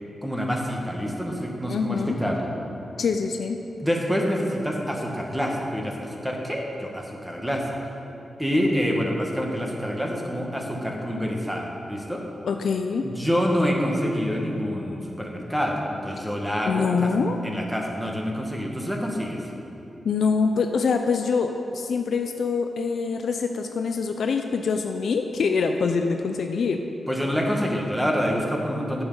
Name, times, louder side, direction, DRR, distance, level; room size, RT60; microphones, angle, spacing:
voice 1, 0.2-2.5 3.8-7.7 8.4-12.2 13.0-17.1 17.4-19.4 27.1-29.0, equal, 5° right, 0 dB, 1.2 m, -27 dB
voice 2, 1.7-2.2 3.0-3.6 12.4-13.1 16.7-17.4 20.0-26.8, left 5 dB, 75° left, 5 dB, 0.5 m, -24 dB
10.5 x 7.1 x 5.3 m, 2.9 s
wide cardioid pair, 145°, 0 cm